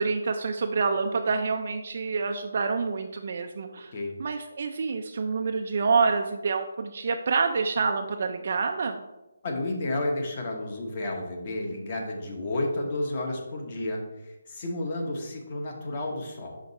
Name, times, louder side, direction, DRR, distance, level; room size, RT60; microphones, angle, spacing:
voice 1, 0.0-3.9 4.2-9.0, right 4 dB, 45° right, 4 dB, 0.4 m, -27 dB
voice 2, 9.4-16.6, left 2 dB, 30° left, 2 dB, 1.0 m, -31 dB
5.7 x 5.1 x 4.0 m, 1.0 s
hypercardioid pair, 170°, 0 cm